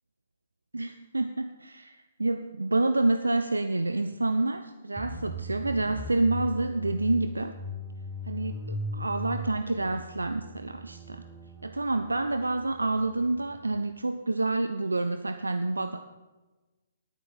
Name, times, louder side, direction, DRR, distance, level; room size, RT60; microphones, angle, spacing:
voice 1, 0.7-7.5 8.3-11.2 11.6-16.0, right 2 dB, 80° right, 9 dB, 0.6 m, -28 dB
sound 1, 5.0-13.8, left 1 dB, 15° right, 1.4 m, -39 dB
10.5 x 9.7 x 7.3 m, 1.2 s
figure-of-eight pair, 125°, 0 cm